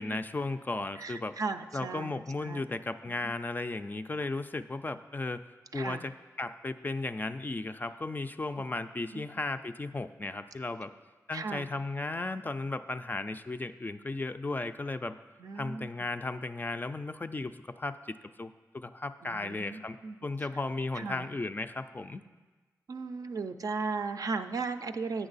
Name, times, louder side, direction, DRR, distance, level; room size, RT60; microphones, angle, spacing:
voice 1, 0.0-1.3 1.7-5.4 5.7-10.9 11.3-15.2 15.6-20.0 20.2-22.2, left 2 dB, 25° left, 10 dB, 0.3 m, -35 dB
voice 2, 1.0-2.6 3.1-3.2 5.7-6.0 9.1-9.2 11.3-11.7 15.4-15.9 19.2-20.2 20.9-21.3 22.9-25.3, right 4 dB, 60° right, 9 dB, 0.4 m, -36 dB
8.7 x 6.0 x 4.0 m, 1.3 s
cardioid pair, 50°, 7 cm